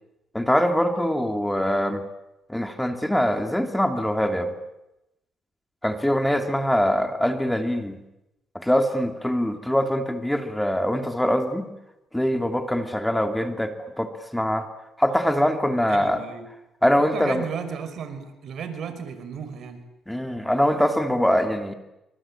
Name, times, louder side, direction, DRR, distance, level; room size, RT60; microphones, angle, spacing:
voice 1, 0.3-2.0 2.5-4.5 5.8-8.0 8.5-11.7 12.1-14.7 15.0-16.2 16.8-17.4 20.1-21.8, equal, 5° left, 6 dB, 2.9 m, -23 dB
voice 2, 15.9-16.5 17.1-19.8, right 7 dB, 65° right, 9 dB, 5.3 m, -34 dB
26.0 x 26.0 x 8.8 m, 0.91 s
cardioid pair, 90°, 0 cm